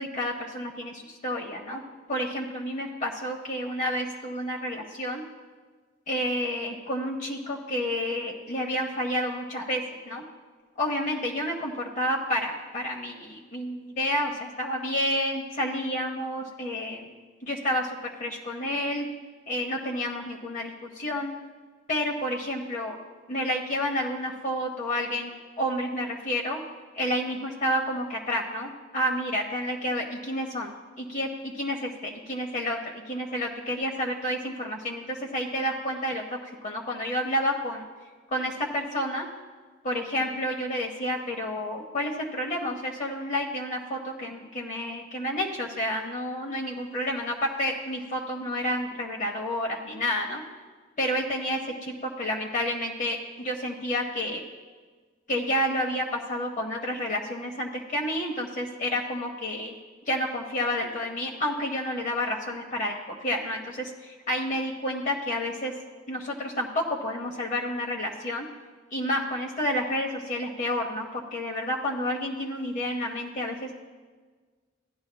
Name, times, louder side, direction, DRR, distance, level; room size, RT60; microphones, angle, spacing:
voice 1, 0.0-1.8 2.1-5.2 6.1-10.2 10.8-17.1 17.4-19.1 19.5-21.3 21.9-23.0 23.3-26.6 26.9-37.9 38.3-39.3 39.8-50.4 51.0-54.4 55.3-59.7 60.1-65.7 66.1-68.5 68.9-73.7, equal, 45° left, 0 dB, 0.9 m, -30 dB
16.0 x 11.0 x 2.2 m, 1.5 s
head